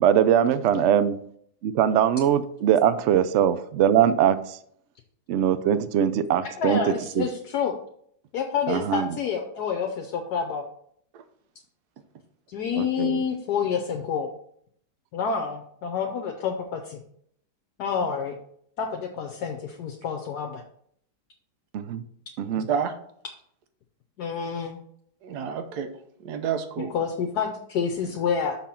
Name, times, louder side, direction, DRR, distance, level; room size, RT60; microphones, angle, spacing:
voice 1, 0.0-1.2 1.6-4.6 5.3-6.8 7.2-7.3 8.7-9.1 12.8-13.2 21.7-22.0 22.4-22.7, right 9 dB, 90° right, 13 dB, 0.6 m, -21 dB
voice 2, 6.6-7.8 8.3-10.7 12.5-14.3 15.1-17.0 17.8-18.4 18.8-20.6 24.2-24.8 26.9-28.6, left 6 dB, 70° left, 4 dB, 1.3 m, -28 dB
voice 3, 22.5-22.9 25.2-25.9 26.2-26.9, right 7 dB, 70° right, 8 dB, 1.3 m, -29 dB
6.2 x 5.7 x 4.3 m, 0.67 s
omnidirectional pair, 1.8 m